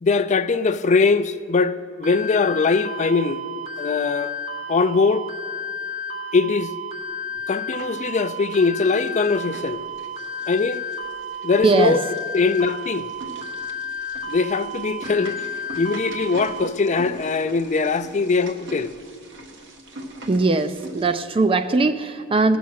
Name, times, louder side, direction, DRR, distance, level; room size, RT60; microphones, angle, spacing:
voice 1, 0.0-3.4 3.8-4.3 4.7-5.3 6.3-6.7 7.5-9.8 10.5-10.8 11.4-12.0 12.3-13.1 14.3-15.4 15.8-18.9, left 4 dB, 35° left, 0.4 m, -21 dB
sound 1, 2.0-16.7, left 1 dB, 80° right, 2.3 m, -32 dB
sound 2, 7.2-8.1 8.4-21.1, right 1 dB, 65° right, 1.5 m, -42 dB
voice 2, 11.6-12.0 20.3-22.6, right 3 dB, 25° right, 0.4 m, -20 dB
17.5 x 7.0 x 6.3 m
head